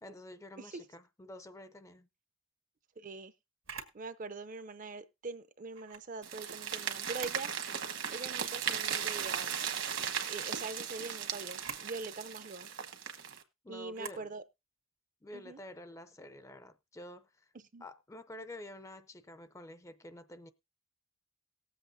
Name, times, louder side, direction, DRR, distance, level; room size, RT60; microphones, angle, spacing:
voice 1, 0.0-2.1 13.6-14.3 15.2-17.5 17.8-20.5, left 1 dB, 15° left, 0.5 m, -49 dB
voice 2, 3.0-3.3 3.9-7.5 8.1-9.6 10.3-12.7 13.7-14.4 15.3-15.6 17.7-17.8, right 3 dB, 40° right, 0.5 m, -43 dB
Camera, 3.6-4.0 5.7-6.1 7.0-7.5 7.9-8.0 9.1-9.5 11.5-11.9 13.9-14.3, right 7 dB, 85° right, 1.7 m, -45 dB
sound 1, 6.2-13.4, right 8 dB, 65° right, 1.2 m, -37 dB
19.0 x 7.8 x 2.6 m
head